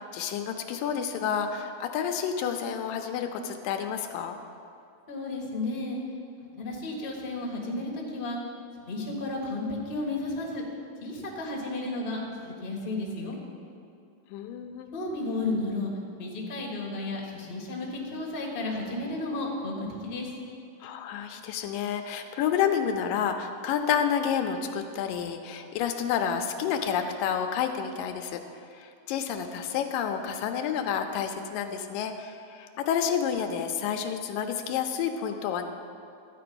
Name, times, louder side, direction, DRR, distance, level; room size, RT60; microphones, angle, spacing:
voice 1, 0.0-4.4 14.3-14.9 20.8-28.4 28.7-35.7, left 8 dB, 80° left, 6 dB, 2.3 m, -29 dB
voice 2, 5.1-6.0 6.6-8.4 8.8-10.7 11.0-13.4 14.9-15.9 16.2-20.3, left 2 dB, 30° left, -2 dB, 1.0 m, -33 dB
12.5 x 5.0 x 8.6 m, 2.6 s
omnidirectional pair, 3.9 m